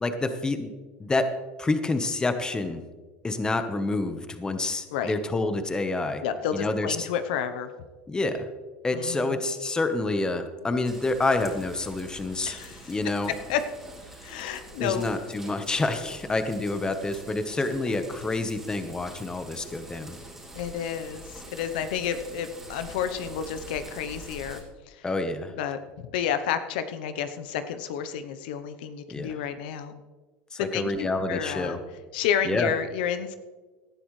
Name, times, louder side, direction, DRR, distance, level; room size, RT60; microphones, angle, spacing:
voice 1, 0.0-0.7 1.0-1.3 1.6-2.8 3.2-6.2 6.5-7.1 8.1-8.4 8.8-12.6 12.9-13.3 14.8-20.2 25.0-25.5 29.1-29.4 30.5-31.8 32.4-32.7, left 2 dB, 15° left, 9 dB, 1.2 m, -28 dB
voice 2, 6.2-7.7 8.9-9.4 12.5-13.0 13.3-13.6 14.2-15.1 20.5-24.6 24.9-25.0 25.6-25.8 26.1-30.0 30.6-31.8 32.1-33.4, left 8 dB, 80° left, 10 dB, 0.9 m, -30 dB
sound 1, 10.8-24.6, right 1 dB, 5° right, 3.2 m, -45 dB
18.0 x 11.5 x 3.3 m, 1.3 s
supercardioid pair, 110°, 5 cm